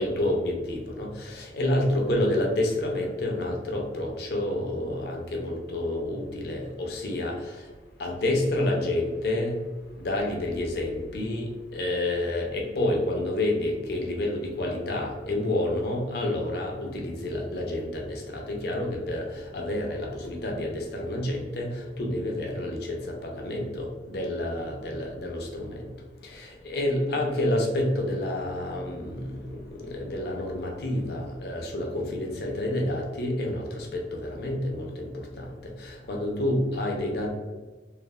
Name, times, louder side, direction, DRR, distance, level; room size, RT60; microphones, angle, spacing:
voice 1, 0.0-7.7 8.0-9.6 10.0-25.9 26.2-37.3, left 1 dB, 55° left, 1 dB, 0.5 m, -29 dB
3.1 x 2.0 x 2.2 m, 1.3 s
head